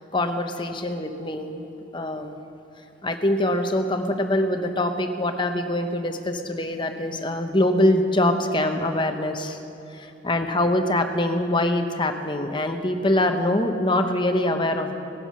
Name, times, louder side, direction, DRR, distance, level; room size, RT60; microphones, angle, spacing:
voice 1, 0.1-1.7 1.9-2.4 3.0-9.6 9.9-15.0, left 1 dB, 25° left, 6 dB, 0.8 m, -24 dB
18.5 x 9.8 x 6.2 m, 2.8 s
head